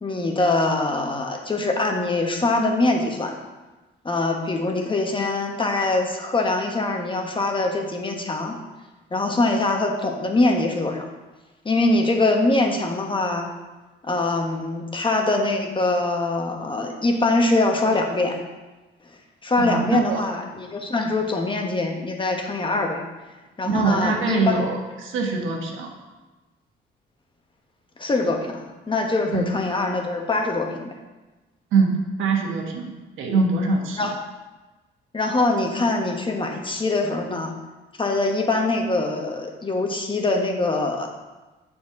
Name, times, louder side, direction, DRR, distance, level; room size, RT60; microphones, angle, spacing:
voice 1, 0.0-3.4 4.0-8.5 9.1-11.0 11.6-13.4 14.0-18.4 19.4-23.0 23.6-24.7 28.0-30.9 34.0-34.2 35.1-37.6 38.0-41.1, left 2 dB, 25° left, 2 dB, 1.2 m, -23 dB
voice 2, 19.6-20.3 23.7-25.9 29.3-29.4 31.7-34.1, right 4 dB, 80° right, 1 dB, 1.3 m, -23 dB
7.2 x 4.4 x 5.9 m, 1.2 s
cardioid pair, 90°, 20 cm